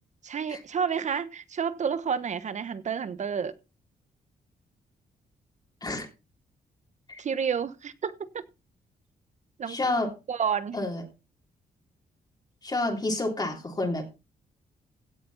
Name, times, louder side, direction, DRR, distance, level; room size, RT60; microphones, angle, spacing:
voice 1, 0.2-3.5 7.2-8.5 9.6-9.8 10.3-10.8, right 7 dB, 50° right, 1.2 m, -30 dB
voice 2, 9.7-10.1 10.7-11.0 12.6-14.0, left 2 dB, 25° left, 3.4 m, -29 dB
16.5 x 7.0 x 4.2 m
cardioid pair, 100°, 15 cm